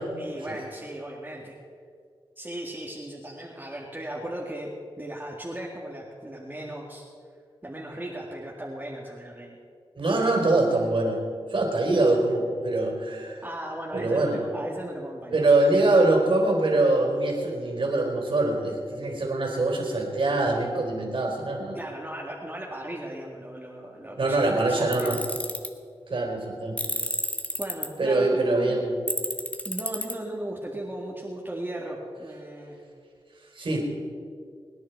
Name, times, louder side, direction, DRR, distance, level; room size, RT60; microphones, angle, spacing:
voice 1, 0.2-1.5 2.4-4.7 5.0-7.0 7.6-9.6 13.4-15.5 15.8-16.3 21.7-25.2 27.6-28.8 29.6-32.8, right 1 dB, 20° right, -3 dB, 2.1 m, -37 dB
voice 2, 10.0-11.2 11.5-13.4 13.9-14.4 15.3-21.8 24.1-25.2 26.1-26.8 28.0-29.0 33.6-33.8, right 2 dB, 60° right, 1 dB, 4.1 m, -24 dB
Tools, 24.9-25.7 26.8-27.9 29.1-30.1, left 1 dB, 15° left, 1.4 m, -30 dB
24.0 x 10.0 x 4.7 m, 2.2 s
wide cardioid pair, 70°, 10 cm